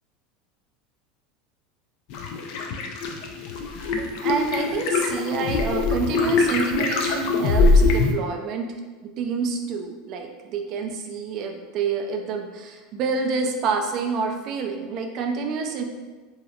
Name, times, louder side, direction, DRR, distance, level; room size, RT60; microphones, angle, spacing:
sound 1, 2.1-8.1, left 3 dB, 65° left, 0.3 m, -22 dB
voice 1, 4.2-8.7 9.0-15.8, right 5 dB, 55° right, 3 dB, 0.3 m, -28 dB
2.7 x 2.0 x 2.4 m, 1.3 s
hypercardioid pair, 100°, 0 cm